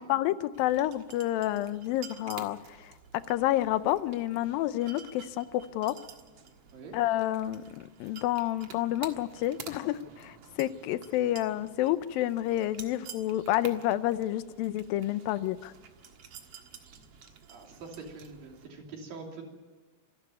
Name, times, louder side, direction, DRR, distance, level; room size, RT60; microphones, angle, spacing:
voice 1, 0.0-2.9 3.3-5.5 5.7-6.0 6.9-15.7, left 14 dB, 90° left, 14 dB, 2.6 m, -29 dB
sound 1, 0.5-18.7, right 7 dB, 50° right, 2.3 m, -50 dB
voice 2, 17.5-19.4, right 4 dB, 80° right, 1 dB, 4.7 m, -44 dB
26.0 x 12.0 x 9.3 m, 1.4 s
omnidirectional pair, 4.0 m